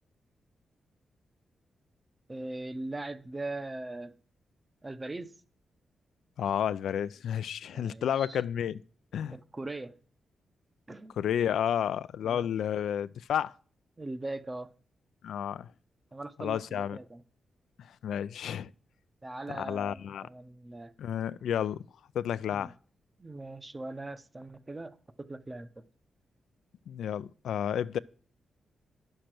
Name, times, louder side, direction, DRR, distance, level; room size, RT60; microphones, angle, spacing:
voice 1, 2.3-4.1 4.8-5.3 7.7-8.4 9.3-10.0 10.9-11.2 12.2-12.5 14.0-14.7 16.1-17.2 19.2-20.9 22.5-22.7 23.2-25.8, right 2 dB, 25° right, 0.7 m, -40 dB
voice 2, 6.4-8.8 9.1-9.3 11.2-13.5 15.2-15.7 16.4-17.0 18.0-18.7 19.5-20.3 21.0-21.8 22.1-22.7 26.9-28.0, left 9 dB, 85° left, 0.4 m, -31 dB
10.0 x 6.6 x 6.0 m
cardioid pair, 85°, 0 cm